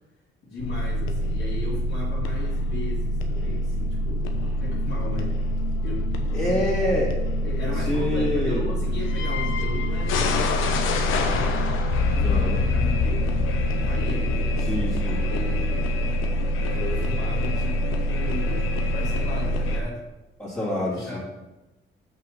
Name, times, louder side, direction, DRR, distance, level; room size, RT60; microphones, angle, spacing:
voice 1, 0.4-5.4 5.8-6.1 6.4-6.6 7.4-11.6 12.1-13.3 13.6-15.9 16.6-20.0 20.9-21.2, left 2 dB, 60° left, -6 dB, 2.2 m, -36 dB
sound 1, 0.6-19.8, left 1 dB, 90° left, 1.0 m, -25 dB
voice 2, 6.3-7.1 7.8-8.7 12.2-12.6 14.6-15.2 20.4-21.2, left 1 dB, 10° left, -9 dB, 2.7 m, -26 dB
6.3 x 5.6 x 6.5 m, 1.1 s
cardioid pair, 90°, 20 cm